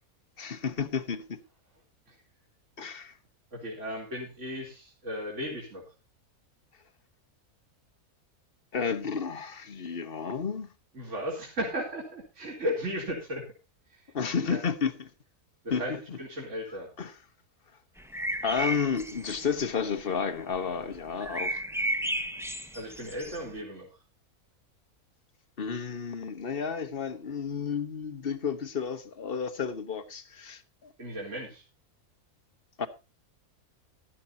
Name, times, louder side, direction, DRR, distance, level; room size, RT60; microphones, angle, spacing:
voice 1, 0.4-1.4 2.8-3.2 8.7-10.7 14.1-15.1 15.7-16.2 17.0-17.1 18.4-21.6 25.6-30.9 32.8-32.9, left 6 dB, 40° left, 1.4 m, -32 dB
voice 2, 3.5-5.8 10.9-13.5 13.9-14.1 14.3-14.6 15.6-16.9 22.7-23.9 31.0-31.6, equal, 55° right, 4.0 m, -35 dB
sound 1, 18.0-19.7 20.2-20.3 20.6-23.5, right 1 dB, ahead, 1.2 m, -33 dB
16.0 x 12.5 x 2.8 m
omnidirectional pair, 1.5 m